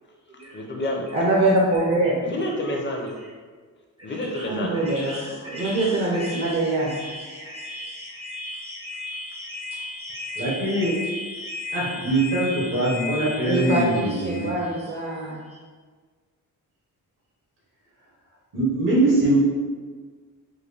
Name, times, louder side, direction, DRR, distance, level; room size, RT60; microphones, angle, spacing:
voice 1, 0.5-1.0 2.2-3.1 4.0-4.8, left 1 dB, 35° left, 0 dB, 0.6 m, -29 dB
voice 2, 1.1-2.2 2.7-2.8 4.2-15.6, right 1 dB, 40° right, -3 dB, 0.6 m, -26 dB
voice 3, 10.4-11.0 11.7-14.5 18.5-19.4, right 1 dB, 65° right, -6 dB, 1.0 m, -22 dB
3.7 x 2.2 x 3.3 m, 1.5 s
cardioid pair, 115°, 34 cm